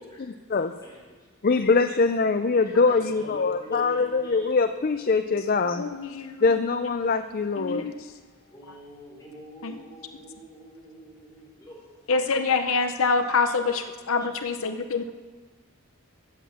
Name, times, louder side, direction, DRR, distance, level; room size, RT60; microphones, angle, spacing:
voice 1, 0.2-0.7 1.4-5.8 6.4-7.9, left 4 dB, 40° left, 9 dB, 0.4 m, -23 dB
voice 2, 0.8-1.4 2.9-4.5 8.5-11.9 13.4-13.5 14.2-14.3, right 1 dB, 15° left, -4 dB, 3.9 m, -47 dB
voice 3, 5.6-6.4 7.6-8.1 9.6-9.8 12.1-15.1, left 4 dB, 75° left, 8 dB, 0.7 m, -26 dB
14.0 x 9.5 x 7.1 m, 1.5 s
head